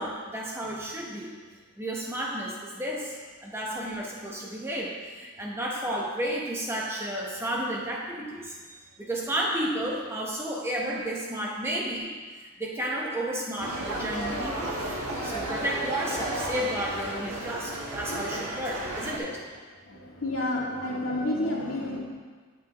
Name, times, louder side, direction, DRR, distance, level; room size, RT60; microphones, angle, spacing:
voice 1, 0.0-1.3 1.8-3.2 3.4-14.8 15.2-19.4, equal, 10° right, -3 dB, 0.9 m, -32 dB
voice 2, 2.3-2.8 9.0-9.4 16.5-18.5 19.1-22.0, left 1 dB, 70° left, -4 dB, 1.9 m, -34 dB
sound 1, 13.6-19.2, right 2 dB, 85° right, 1.4 m, -33 dB
9.4 x 8.0 x 3.0 m, 1.5 s
head